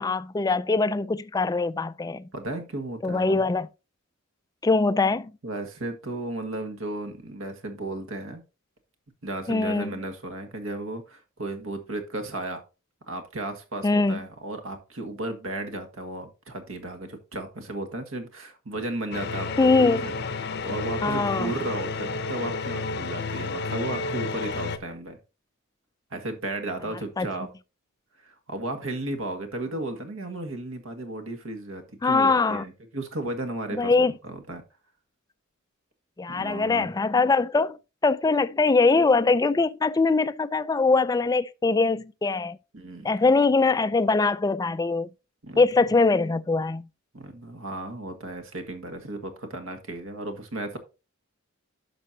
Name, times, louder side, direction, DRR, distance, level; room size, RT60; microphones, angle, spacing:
voice 1, 0.0-2.3 3.0-3.7 4.6-5.3 9.5-9.9 13.8-14.2 19.6-20.0 21.0-21.5 27.2-27.3 32.0-32.6 33.7-34.1 36.2-42.6 43.0-45.1 45.6-46.9, left 3 dB, 15° left, 0.3 m, -22 dB
voice 2, 2.3-3.4 5.4-8.4 9.2-12.6 13.1-20.1 20.6-25.2 26.1-27.5 28.2-34.6 36.3-36.9 42.7-43.1 45.4-45.9 47.1-50.8, right 2 dB, 65° right, 1.7 m, -34 dB
sound 1, 19.1-24.8, left 3 dB, 50° left, 0.7 m, -31 dB
11.0 x 6.1 x 2.7 m
head